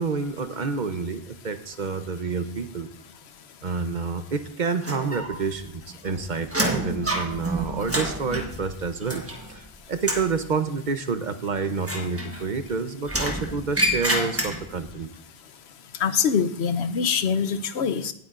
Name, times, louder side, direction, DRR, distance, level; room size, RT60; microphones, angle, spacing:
voice 1, 0.0-2.9 3.6-9.2 9.5-15.1, right 4 dB, 50° right, 9 dB, 0.9 m, -28 dB
sound 1, 4.8-5.6 5.9-9.7 10.0-10.4 11.8-12.7 13.1-14.9, equal, 15° right, 1.3 m, -28 dB
voice 2, 16.0-18.1, left 6 dB, 85° left, 10 dB, 1.0 m, -24 dB
18.0 x 8.6 x 2.5 m, 0.75 s
omnidirectional pair, 1.1 m